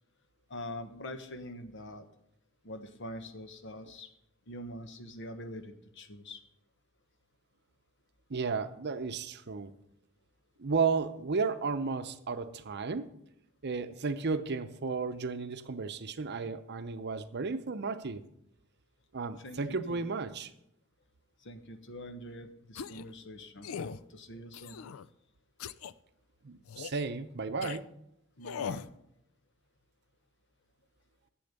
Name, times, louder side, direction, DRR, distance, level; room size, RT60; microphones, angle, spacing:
voice 1, 0.5-2.1 2.6-4.1 4.5-6.4 19.4-20.0 21.4-24.8 28.4-28.9, left 1 dB, 60° left, 8 dB, 1.2 m, -44 dB
voice 2, 8.3-9.7 10.6-13.1 13.6-18.2 19.1-20.5 26.4-27.9, right 4 dB, 55° right, 10 dB, 0.7 m, -33 dB
sound 1, 22.8-23.1 23.6-24.0 24.5-25.1 25.6-25.9 26.7-27.1 27.6-27.8 28.4-28.9, left 7 dB, 80° left, 0.4 m, -40 dB
10.5 x 7.8 x 6.6 m, 0.80 s
head